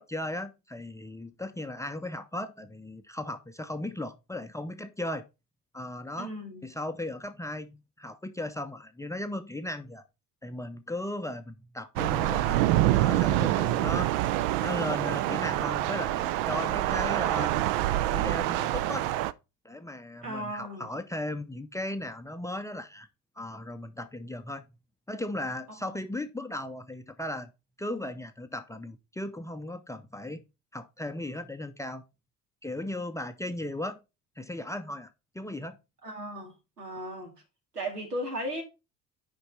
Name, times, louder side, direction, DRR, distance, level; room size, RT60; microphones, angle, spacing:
voice 1, 0.0-5.2 5.7-6.3 6.6-10.0 10.4-14.1 14.6-17.5 18.1-19.1 19.6-23.1 23.4-24.6 25.1-27.5 27.8-30.4 30.7-32.0 32.6-34.0 34.4-35.8, left 1 dB, 5° left, 0.6 m, -36 dB
voice 2, 6.2-6.7 20.2-20.9 25.8-25.9 36.0-37.3 37.7-38.6, right 1 dB, 85° right, 2.2 m, -36 dB
Thunder / Rain, 12.0-19.3, right 15 dB, 55° right, 0.6 m, -26 dB
7.1 x 5.3 x 4.6 m
figure-of-eight pair, 65°, 46 cm